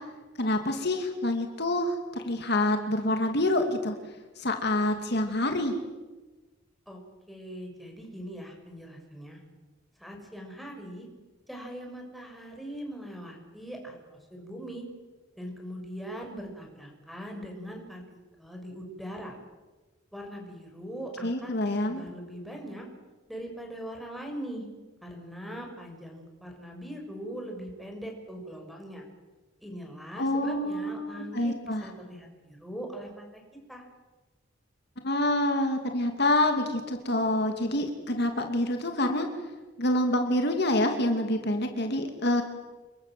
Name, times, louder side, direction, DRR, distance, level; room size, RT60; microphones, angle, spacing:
voice 1, 0.4-3.9 4.4-5.7 21.2-22.0 30.2-31.8 35.0-39.3 39.8-42.4, left 1 dB, 60° left, 5 dB, 2.5 m, -27 dB
voice 2, 7.3-9.4 10.0-11.1 11.5-14.8 15.4-18.0 18.4-19.4 20.1-22.9 23.3-24.7 25.0-29.1 29.6-33.4 33.7-33.8, equal, ahead, 1 dB, 6.2 m, -41 dB
29.0 x 22.0 x 7.6 m, 1.2 s
head